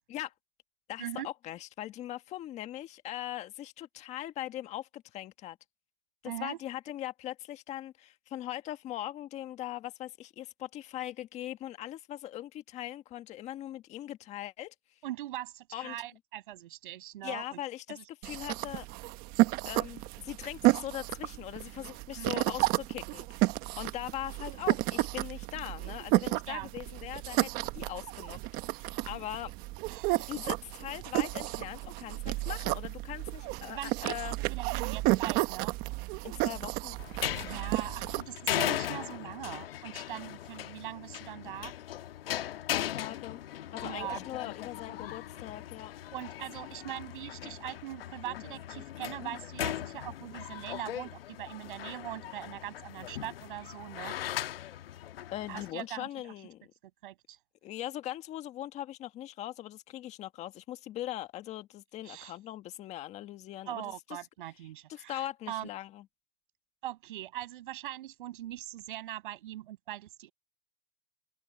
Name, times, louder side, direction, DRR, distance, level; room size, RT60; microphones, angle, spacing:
voice 1, 0.9-5.6 6.2-14.7 15.7-16.0 17.2-18.0 18.2-18.9 19.6-28.4 28.7-29.5 30.3-34.4 36.2-37.0 42.7-43.4 43.7-45.9 55.3-56.6 57.6-63.9 64.9-66.0, left 13 dB, 20° left, 1.6 m, -40 dB
voice 2, 6.2-6.6 15.0-17.6 17.9-18.0 22.2-22.4 26.5-26.7 29.0-29.1 29.9-30.3 33.7-35.8 37.4-41.7 43.8-44.2 46.1-54.1 55.5-56.3 57.0-57.4 62.0-62.3 63.7-65.7 66.8-70.3, right 14 dB, 60° right, 7.7 m, -41 dB
sound 1, 18.2-38.2, right 20 dB, 30° right, 1.2 m, -32 dB
sound 2, 37.0-55.7, left 12 dB, 75° left, 1.4 m, -38 dB
open air
hypercardioid pair, 150°, 30 cm